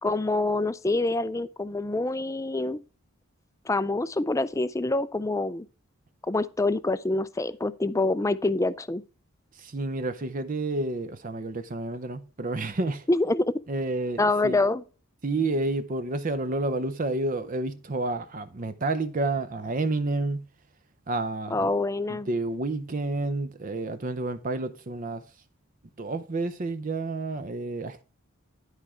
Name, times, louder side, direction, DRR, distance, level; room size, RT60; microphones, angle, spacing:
voice 1, 0.0-2.8 3.7-5.7 6.2-9.0 13.1-13.5 14.2-14.8 21.5-22.3, left 2 dB, 15° left, 0.4 m, -26 dB
voice 2, 9.5-13.1 13.7-14.6 15.2-20.5 21.1-21.7 22.1-25.2 26.0-28.0, right 2 dB, 40° right, 0.6 m, -30 dB
11.5 x 4.9 x 4.3 m
head